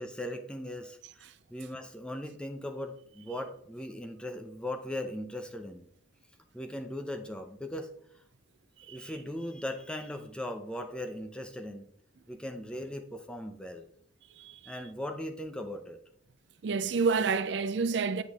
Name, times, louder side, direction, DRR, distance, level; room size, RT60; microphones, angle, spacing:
voice 1, 0.0-5.9 6.5-7.9 8.9-11.9 12.3-13.9 14.7-16.0, left 1 dB, 5° left, 0.6 m, -39 dB
voice 2, 14.4-14.8 16.6-18.2, right 5 dB, 65° right, 0.4 m, -29 dB
8.1 x 5.8 x 3.5 m
head